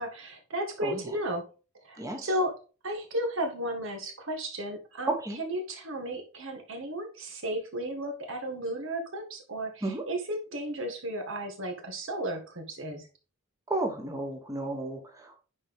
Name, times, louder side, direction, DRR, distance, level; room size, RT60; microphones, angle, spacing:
voice 1, 0.0-1.5 1.8-2.5 2.8-13.1, right 1 dB, 65° right, 4 dB, 1.8 m, -34 dB
voice 2, 0.8-1.1 2.0-2.3 5.1-5.4 9.8-10.0 13.7-15.4, right 2 dB, 15° right, 2 dB, 1.3 m, -32 dB
9.8 x 4.6 x 3.6 m, 0.34 s
head